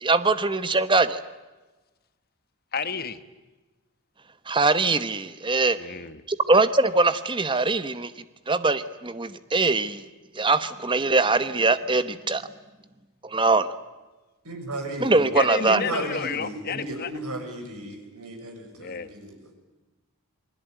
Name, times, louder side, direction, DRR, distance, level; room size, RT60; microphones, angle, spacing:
voice 1, 0.0-1.2 4.5-5.8 6.3-8.1 8.5-10.0 10.3-12.4 13.2-13.7 15.0-15.8, right 3 dB, 20° right, 12 dB, 1.0 m, -22 dB
voice 2, 2.7-3.2 5.7-6.2 15.3-17.1 18.8-19.1, left 5 dB, 45° left, 11 dB, 1.2 m, -31 dB
voice 3, 14.4-15.3 15.6-19.4, right 1 dB, 85° right, 4 dB, 6.8 m, -34 dB
28.0 x 21.0 x 9.2 m, 1.2 s
head